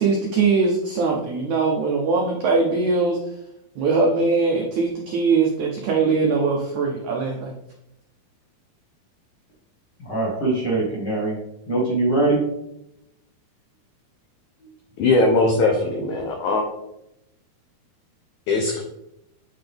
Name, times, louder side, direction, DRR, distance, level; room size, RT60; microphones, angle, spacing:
voice 1, 0.0-3.2 3.7-7.5, right 4 dB, 85° right, 0 dB, 1.6 m, -21 dB
voice 2, 10.1-11.3 11.7-12.4, right 2 dB, 45° left, -5 dB, 1.5 m, -22 dB
voice 3, 15.0-16.6 18.5-18.8, left 3 dB, 85° left, 2 dB, 1.7 m, -20 dB
9.6 x 3.8 x 3.5 m, 0.84 s
omnidirectional pair, 4.4 m